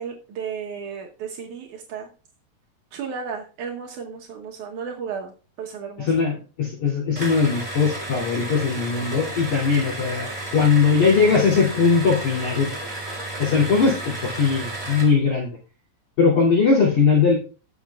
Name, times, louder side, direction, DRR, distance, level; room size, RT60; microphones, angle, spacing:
voice 1, 0.0-2.1 2.9-5.3 5.6-6.1, right 6 dB, 80° right, 1 dB, 1.7 m, -33 dB
voice 2, 6.0-12.7 13.4-15.5 16.2-17.4, left 5 dB, 45° left, -4 dB, 3.7 m, -20 dB
sound 1, 7.1-15.2, right 1 dB, 10° right, 2.7 m, -33 dB
19.0 x 7.2 x 2.4 m, 0.36 s
omnidirectional pair, 5.2 m